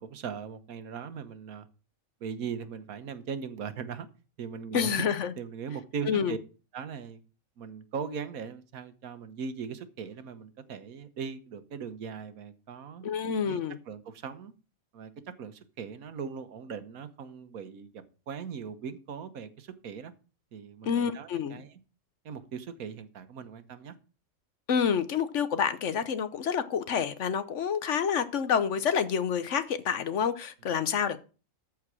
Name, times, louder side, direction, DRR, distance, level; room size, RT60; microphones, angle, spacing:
voice 1, 0.0-1.7 2.2-4.1 4.4-5.0 5.4-6.4 6.7-7.2 7.6-13.0 13.5-14.5 14.9-15.1 15.4-20.1 20.5-21.7 22.2-23.9, right 6 dB, 85° right, 1.5 m, -39 dB
voice 2, 4.7-5.3 6.1-6.4 13.0-13.8 20.8-21.6 24.7-31.2, left 7 dB, 60° left, 1.1 m, -28 dB
13.5 x 4.7 x 6.1 m
omnidirectional pair, 1.4 m